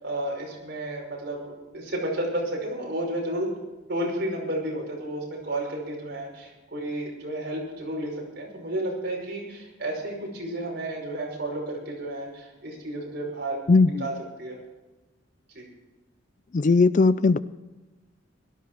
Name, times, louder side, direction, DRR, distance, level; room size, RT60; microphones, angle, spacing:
voice 1, 0.0-3.5 3.9-13.6 14.0-14.1 14.4-14.6 15.5-15.6, right 1 dB, 55° right, -2 dB, 5.6 m, -32 dB
voice 2, 13.7-14.1 16.5-17.4, left 3 dB, 40° left, 16 dB, 0.4 m, -18 dB
17.5 x 13.0 x 4.6 m, 1.1 s
head